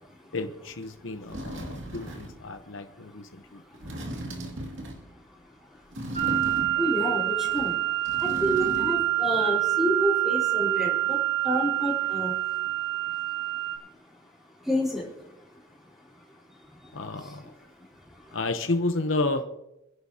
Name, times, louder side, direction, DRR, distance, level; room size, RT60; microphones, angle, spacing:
voice 1, 0.3-3.6 16.9-17.5 18.3-19.4, left 2 dB, 65° left, 7 dB, 0.9 m, -31 dB
sound 1, 0.8-0.9 1.3-2.4 3.7-5.1 5.9-7.0 7.4-9.1 9.4-9.5, equal, 65° right, 2.5 m, -36 dB
sound 2, 6.2-13.8, right 16 dB, 35° right, 3.4 m, -26 dB
voice 2, 6.8-7.7 8.2-11.2 11.4-12.3 14.7-15.0, equal, ahead, -3 dB, 4.8 m, -28 dB
27.0 x 11.0 x 2.9 m, 0.89 s
head